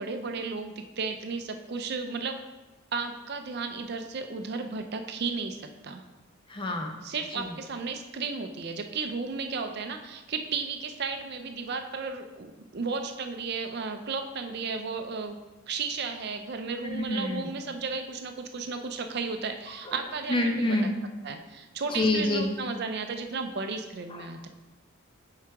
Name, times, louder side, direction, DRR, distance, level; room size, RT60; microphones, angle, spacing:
voice 1, 0.0-2.4 2.9-6.0 7.0-15.4 15.7-20.8 21.2-24.5, right 4 dB, 50° right, 6 dB, 0.5 m, -34 dB
voice 2, 6.5-6.9 7.4-7.5 16.8-17.5 19.9-20.0 20.3-20.9 21.9-22.5 24.1-24.3, left 1 dB, 25° left, 3 dB, 0.6 m, -27 dB
7.5 x 4.8 x 3.5 m, 1.1 s
head